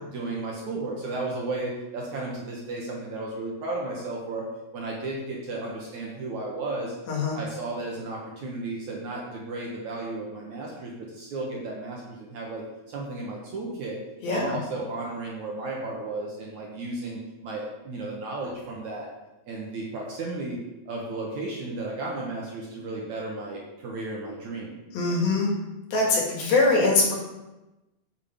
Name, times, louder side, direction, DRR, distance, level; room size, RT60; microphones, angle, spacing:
voice 1, 0.1-6.9 7.3-14.0 14.2-19.1 19.5-24.8 25.1-25.2, right 2 dB, 60° right, -2 dB, 2.3 m, -34 dB
voice 2, 7.1-7.4 14.2-14.6 24.9-25.5 25.9-27.1, left 3 dB, 65° left, -1 dB, 4.0 m, -22 dB
8.4 x 7.0 x 7.1 m, 1.0 s
omnidirectional pair, 4.6 m